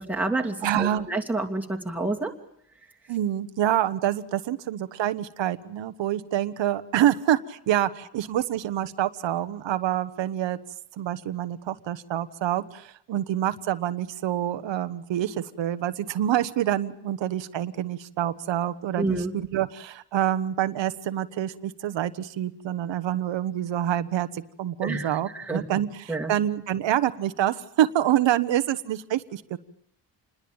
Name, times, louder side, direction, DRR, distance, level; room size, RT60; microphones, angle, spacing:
voice 1, 0.0-2.3 19.0-19.3 24.8-25.8 26.1-26.3, right 2 dB, 5° right, 0 dB, 2.6 m, -29 dB
voice 2, 0.6-1.1 3.1-10.6 10.9-29.6, right 12 dB, 90° right, 11 dB, 1.3 m, -27 dB
28.0 x 21.0 x 8.8 m, 0.68 s
wide cardioid pair, 155°, 43 cm